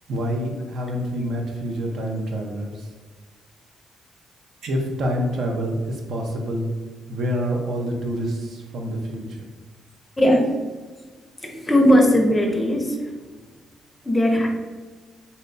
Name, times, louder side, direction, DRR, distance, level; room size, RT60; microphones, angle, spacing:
voice 1, 0.1-2.9 4.6-6.7 7.1-9.5, equal, 65° right, 1 dB, 0.6 m, -27 dB
voice 2, 10.2-10.5 11.4-13.0 14.0-14.5, equal, 20° left, 2 dB, 0.5 m, -18 dB
2.7 x 2.1 x 3.9 m, 1.4 s
cardioid pair, 90°, 0 cm